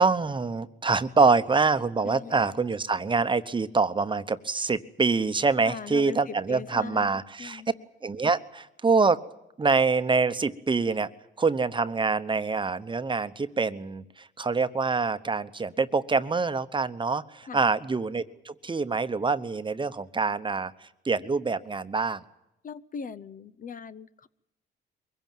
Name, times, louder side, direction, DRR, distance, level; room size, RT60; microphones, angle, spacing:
voice 1, 0.0-7.6 8.0-9.2 9.6-11.1 11.4-22.2, right 4 dB, 25° right, 11 dB, 1.0 m, -25 dB
voice 2, 2.0-2.6 5.6-7.7 17.5-17.7 22.6-24.3, left 6 dB, 45° left, 15 dB, 0.8 m, -40 dB
23.0 x 16.0 x 9.3 m, 0.88 s
cardioid pair, 90°, 20 cm